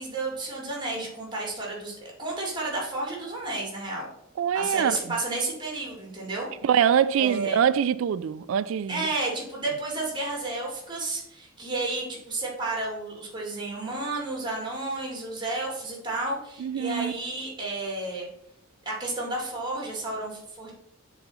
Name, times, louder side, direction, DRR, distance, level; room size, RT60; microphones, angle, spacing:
voice 1, 0.0-4.1 4.5-6.5 7.2-7.6 8.9-18.3 18.8-20.7, right 2 dB, 20° right, 2.3 m, -32 dB
voice 2, 4.4-5.0 6.6-9.1 16.6-17.1, right 8 dB, 70° right, 0.3 m, -24 dB
7.0 x 4.0 x 5.5 m
head